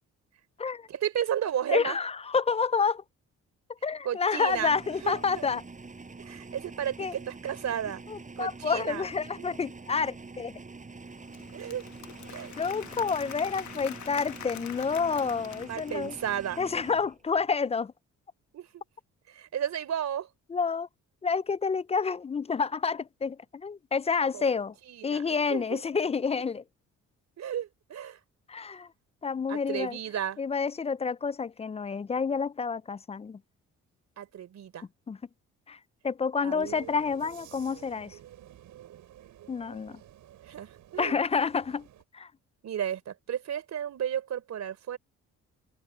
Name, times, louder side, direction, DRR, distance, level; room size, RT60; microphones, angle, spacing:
voice 1, 0.9-2.0 4.0-4.7 5.0-5.5 6.2-8.0 8.4-9.1 9.4-9.5 11.5-11.9 12.3-12.5 15.7-16.6 18.5-18.8 19.3-20.3 24.3-24.5 24.9-25.8 27.4-28.2 29.5-30.4 34.2-34.8 36.4-36.9 40.4-41.2 42.6-45.0, right 9 dB, 60° right, 3.6 m, -33 dB
voice 2, 1.7-3.0 3.8-5.6 7.0-7.1 8.1-10.5 12.6-16.2 16.6-17.9 20.5-20.9 21.2-24.7 25.0-26.6 28.5-28.9 29.2-30.0 30.4-33.4 35.1-35.2 35.7-38.2 39.5-40.0 41.0-41.9 42.1-42.3, left 5 dB, 20° left, 0.4 m, -29 dB
sound 1, 4.5-17.5, right 3 dB, 25° right, 7.6 m, -46 dB
Applause / Crowd, 11.1-16.5, left 11 dB, 70° left, 1.3 m, -45 dB
sound 2, 36.6-42.0, right 12 dB, 80° right, 6.7 m, -51 dB
open air
cardioid pair, 90°, 30 cm